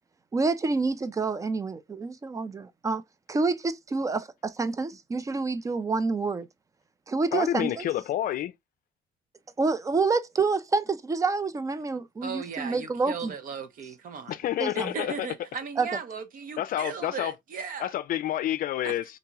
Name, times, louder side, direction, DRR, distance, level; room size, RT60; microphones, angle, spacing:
voice 1, 0.3-3.0 3.3-6.5 7.1-7.9 9.6-13.3 14.6-14.9 15.8-15.9, right 4 dB, 20° right, 0.4 m, -28 dB
voice 2, 7.3-8.5 14.3-15.3 16.6-17.3 17.8-19.1, left 12 dB, 55° left, 0.4 m, -29 dB
voice 3, 12.2-14.4 14.7-17.9 18.8-19.0, right 6 dB, 55° right, 0.8 m, -37 dB
3.9 x 2.9 x 2.3 m
cardioid pair, 110°, 17 cm